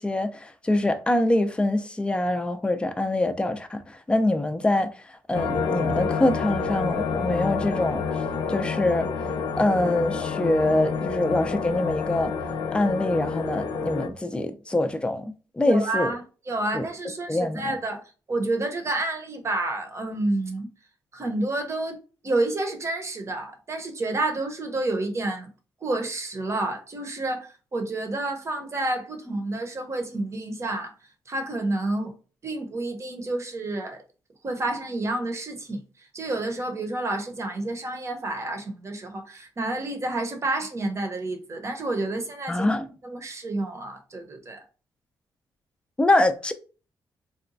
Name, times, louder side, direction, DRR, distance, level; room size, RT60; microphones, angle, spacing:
voice 1, 0.0-8.0 8.5-9.1 9.6-12.3 12.7-16.1 16.7-16.8 17.3-17.6 42.5-42.9 46.0-46.5, left 1 dB, 10° left, 0.4 m, -24 dB
sound 1, 5.3-14.1, left 5 dB, 75° left, 0.5 m, -28 dB
voice 2, 15.6-18.0 18.3-20.7 21.1-22.0 22.2-25.5 25.8-30.9 31.3-32.2 32.4-34.0 34.4-42.7 43.0-44.6, right 2 dB, 35° right, 0.8 m, -29 dB
3.9 x 2.2 x 2.6 m
cardioid pair, 105°, 8 cm